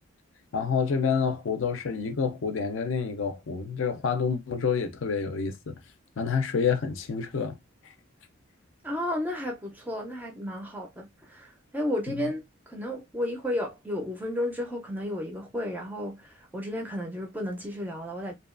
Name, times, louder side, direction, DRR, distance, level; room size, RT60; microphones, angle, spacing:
voice 1, 0.5-5.7 6.2-7.6, left 6 dB, 60° left, 0.4 m, -28 dB
voice 2, 8.8-12.4 12.7-16.3 16.5-18.3, left 1 dB, 10° right, 0.4 m, -32 dB
2.7 x 2.2 x 2.4 m
head